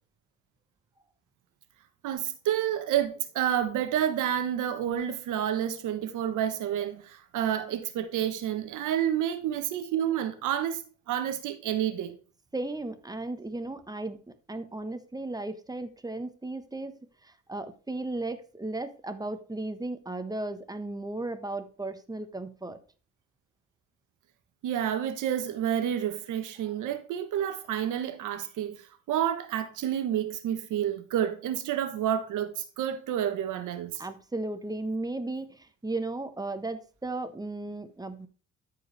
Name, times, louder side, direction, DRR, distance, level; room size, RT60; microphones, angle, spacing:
voice 1, 2.0-12.2 24.6-28.8 29.1-33.9, right 10 dB, 85° right, 1.3 m, -29 dB
voice 2, 12.5-22.8 34.0-38.3, right 2 dB, 15° right, 1.1 m, -35 dB
13.0 x 4.8 x 3.3 m
cardioid pair, 90°, 30 cm